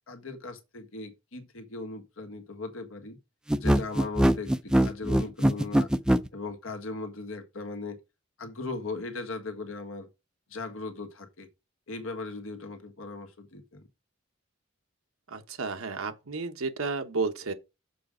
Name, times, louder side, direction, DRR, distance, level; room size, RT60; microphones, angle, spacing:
voice 1, 0.1-3.2 3.6-5.9 6.3-8.0 8.4-10.1 10.5-11.5 11.9-13.9, left 3 dB, 80° left, 1.5 m, -38 dB
sound 1, 3.5-6.3, right 1 dB, 5° right, 0.4 m, -22 dB
voice 2, 15.3-17.5, right 4 dB, 90° right, 1.1 m, -32 dB
6.8 x 5.1 x 5.0 m
head